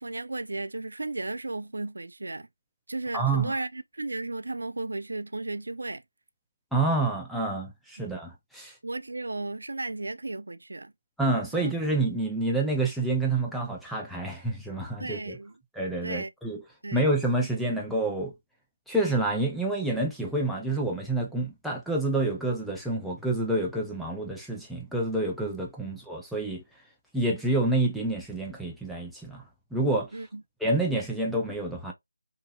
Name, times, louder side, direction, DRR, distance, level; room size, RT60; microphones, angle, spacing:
voice 1, 0.0-2.5 2.9-6.0 8.8-10.9 11.5-11.7 15.0-15.5 16.0-16.3 16.8-17.0 30.1-30.4, right 2 dB, 70° right, 0.3 m, -34 dB
voice 2, 3.1-3.5 6.7-8.8 11.2-15.4 15.8-16.6 16.9-18.3 18.9-26.6 27.1-29.5 29.7-30.1 30.6-31.9, right 2 dB, ahead, 0.4 m, -28 dB
2.8 x 2.7 x 2.3 m
figure-of-eight pair, 165°, 0 cm